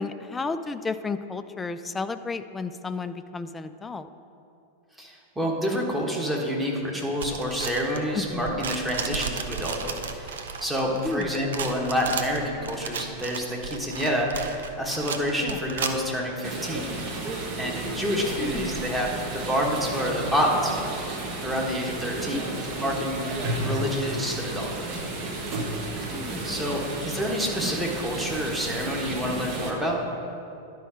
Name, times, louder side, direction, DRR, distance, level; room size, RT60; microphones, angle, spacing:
voice 1, 0.0-4.1 8.1-8.6 11.0-11.4 15.4-15.6 18.4-18.8 22.3-23.0 26.1-26.5, left 4 dB, 15° left, 11 dB, 0.3 m, -33 dB
voice 2, 5.0-16.9 17.6-22.5 22.8-23.3 23.6-24.9 26.4-30.0, equal, 5° right, -2 dB, 1.3 m, -28 dB
sound 1, 7.2-16.2, right 5 dB, 65° right, 0.6 m, -34 dB
sound 2, 16.4-29.7, right 2 dB, 40° right, 1.1 m, -32 dB
11.0 x 4.6 x 5.0 m, 2.6 s
figure-of-eight pair, 90°, 0 cm